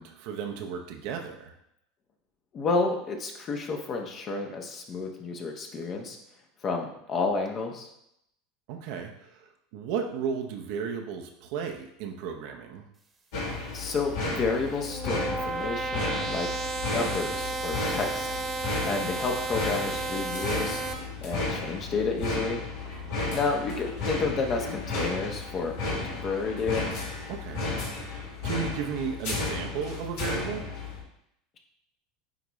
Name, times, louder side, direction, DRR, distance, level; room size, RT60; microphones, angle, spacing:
voice 1, 0.0-1.5 8.7-12.8 22.9-23.3 27.3-27.9 28.4-30.6, right 6 dB, 65° right, 3 dB, 0.8 m, -34 dB
voice 2, 2.5-6.2 6.6-7.9 13.7-16.5 16.9-18.3 18.9-20.8 21.2-22.6 23.3-25.7 26.0-26.9, left 4 dB, 40° left, 2 dB, 1.2 m, -30 dB
sound 1, 13.3-31.0, left 3 dB, 70° left, 2.1 m, -33 dB
sound 2, 14.4-20.9, right 3 dB, 25° right, 1.2 m, -33 dB
9.1 x 3.5 x 3.2 m, 0.77 s
hypercardioid pair, 85°, 0 cm